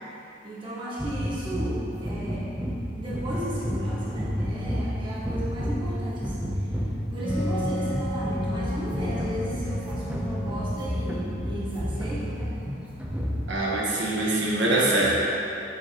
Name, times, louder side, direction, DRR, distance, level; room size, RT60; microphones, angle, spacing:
voice 1, 0.4-2.4 2.9-6.5 7.1-12.5, right 1 dB, 25° right, -9 dB, 1.6 m, -35 dB
sound 1, 1.0-13.7, equal, 5° right, 0.7 m, -30 dB
Wind instrument woodwind instrument, 7.2-12.6, left 1 dB, 35° left, 0.8 m, -35 dB
voice 2, 13.5-15.2, right 2 dB, 70° right, -5 dB, 1.4 m, -23 dB
7.2 x 7.1 x 3.0 m, 2.7 s
head